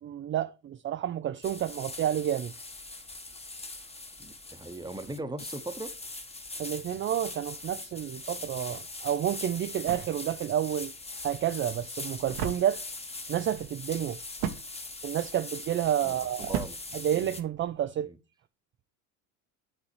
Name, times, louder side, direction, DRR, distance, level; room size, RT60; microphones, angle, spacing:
voice 1, 0.0-2.5 6.6-10.9 11.2-12.8 13.3-14.2 15.0-16.5 16.9-18.1, right 10 dB, 30° right, 0.5 m, -30 dB
sound 1, 1.4-17.4, left 3 dB, 15° left, 1.2 m, -42 dB
voice 2, 4.2-5.9 16.0-16.8 17.1-17.4 18.0-18.2, right 2 dB, 10° right, 1.0 m, -39 dB
sound 2, 9.0-17.9, right 9 dB, 75° right, 1.2 m, -40 dB
11.5 x 4.0 x 3.2 m
hypercardioid pair, 80°, 45 cm